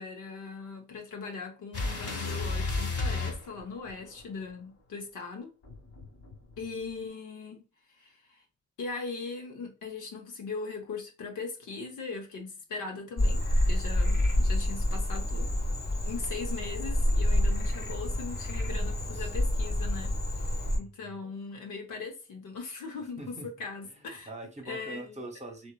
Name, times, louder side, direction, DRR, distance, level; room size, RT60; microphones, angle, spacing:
voice 1, 0.0-5.5 6.6-7.6 8.0-8.4 8.8-15.5 16.0-24.3 24.6-25.1, left 4 dB, 80° left, 0.8 m, -40 dB
sound 1, 1.7-4.2 5.6-6.9, left 3 dB, 50° left, 1.2 m, -33 dB
Frog, 13.2-20.8, left 1 dB, 35° left, 0.8 m, -28 dB
voice 2, 18.9-19.3 20.8-21.2 23.2-23.5 23.8-25.7, right 1 dB, 20° right, 0.9 m, -44 dB
2.8 x 2.2 x 2.2 m
cardioid pair, 60°, 30 cm